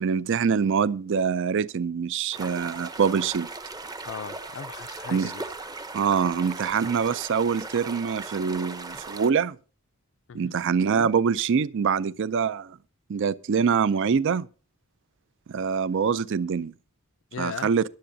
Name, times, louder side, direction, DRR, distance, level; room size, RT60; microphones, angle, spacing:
voice 1, 0.0-3.5 5.1-5.3 5.9-9.6 10.3-12.8 13.1-14.5 15.5-16.7 17.4-17.8, right 6 dB, 60° right, 0.4 m, -24 dB
sound 1, 2.3-9.3, right 3 dB, 15° right, 0.7 m, -38 dB
voice 2, 4.0-5.4 10.3-10.5 17.3-17.7, left 7 dB, 60° left, 0.4 m, -38 dB
22.0 x 7.8 x 2.7 m
head